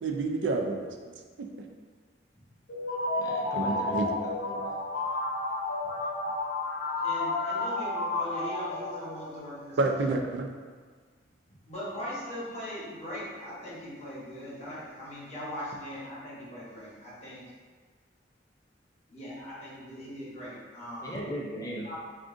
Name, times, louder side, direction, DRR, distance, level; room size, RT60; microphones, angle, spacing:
voice 1, 0.0-1.5 3.6-4.1 9.8-10.6, right 3 dB, 80° right, 3 dB, 0.4 m, -29 dB
sound 1, 2.7-9.5, left 2 dB, 90° left, 0.5 m, -31 dB
voice 2, 3.2-4.7 21.0-21.9, equal, 20° left, -4 dB, 0.5 m, -38 dB
voice 3, 7.0-9.9 11.7-17.4 19.1-21.3 21.6-21.9, equal, 40° left, -9 dB, 1.0 m, -40 dB
2.5 x 2.5 x 3.6 m, 1.5 s
head